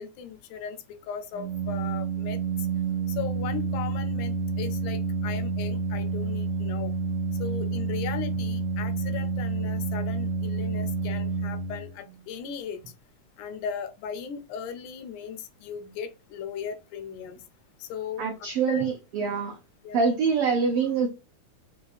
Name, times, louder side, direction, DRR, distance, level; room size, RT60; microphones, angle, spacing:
voice 1, 0.0-2.4 3.2-6.9 7.4-12.8 13.4-17.4 17.8-18.2 18.7-18.9 19.8-20.0, left 7 dB, 85° left, 2.2 m, -37 dB
Organ, 1.3-12.1, right 4 dB, 65° right, 0.9 m, -29 dB
voice 2, 18.2-19.6 19.9-21.1, right 5 dB, 85° right, 1.2 m, -25 dB
6.7 x 2.4 x 2.5 m
omnidirectional pair, 3.4 m